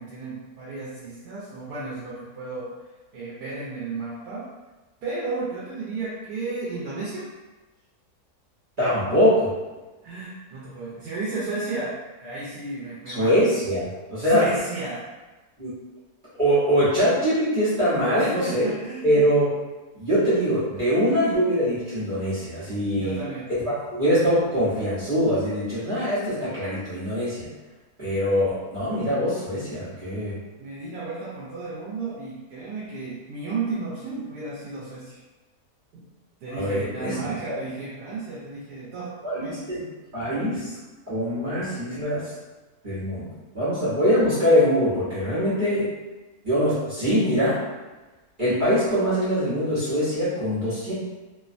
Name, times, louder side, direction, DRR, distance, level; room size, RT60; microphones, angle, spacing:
voice 1, 0.0-2.7 3.1-4.5 5.0-7.3 10.0-13.3 14.2-15.1 18.2-19.1 22.9-23.5 30.6-35.2 35.9-36.0 36.4-39.6, right 3 dB, 85° right, -8 dB, 1.2 m, -33 dB
voice 2, 8.8-9.5 13.1-14.5 15.6-15.7 16.4-18.7 19.0-19.5 19.9-23.2 23.9-27.5 28.0-30.4 36.6-37.2 39.2-39.8 40.1-40.7 41.1-42.3 42.8-45.9 46.4-47.6 48.4-50.9, equal, 40° right, -13 dB, 0.9 m, -23 dB
2.9 x 2.1 x 2.5 m, 1.2 s
omnidirectional pair, 1.6 m